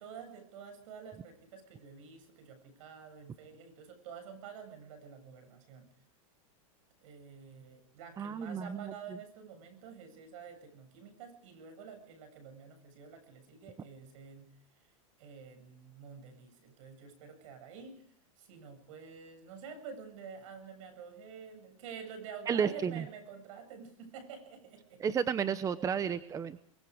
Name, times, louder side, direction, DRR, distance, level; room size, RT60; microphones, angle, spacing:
voice 1, 0.0-5.9 7.0-14.5 15.2-18.0 18.4-25.0, right 6 dB, 65° right, 9 dB, 7.7 m, -49 dB
voice 2, 8.2-8.9 22.5-23.0 25.0-26.6, right 7 dB, 20° right, 13 dB, 0.9 m, -32 dB
23.0 x 23.0 x 5.0 m, 0.69 s
supercardioid pair, 135°, 18 cm